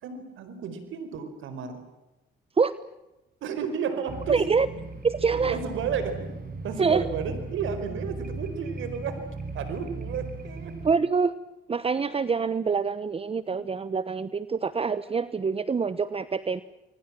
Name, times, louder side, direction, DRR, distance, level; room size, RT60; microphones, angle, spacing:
voice 1, 0.0-1.8 3.4-4.4 5.3-9.2 9.5-10.7 13.5-13.6 14.8-14.9, right 6 dB, 80° right, 9 dB, 4.6 m, -33 dB
dark-ambient-layered-atmosphere, 4.1-10.9, right 3 dB, 45° right, 7.9 m, -37 dB
voice 2, 4.3-4.7 5.0-5.6 6.8-7.0 10.8-11.3 11.7-16.6, right 5 dB, 30° right, 15 dB, 1.0 m, -25 dB
29.0 x 22.5 x 7.5 m, 0.98 s
cardioid pair, 90°, 20 cm